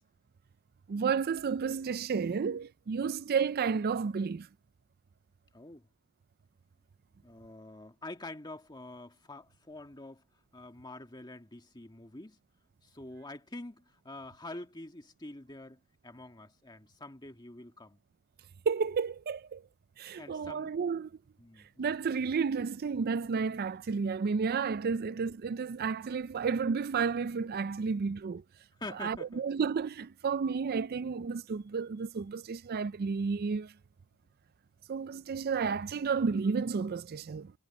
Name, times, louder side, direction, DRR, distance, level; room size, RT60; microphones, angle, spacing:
voice 1, 0.9-4.5 18.7-19.6 20.0-21.1 21.8-28.4 29.0-33.7 34.9-37.5, right 5 dB, 45° right, 0.4 m, -31 dB
voice 2, 5.5-5.9 7.2-10.2 10.5-12.4 12.8-18.0 20.2-20.9 21.4-21.9 25.0-25.1 27.8-27.9 28.8-29.4, left 2 dB, 20° left, 1.7 m, -46 dB
head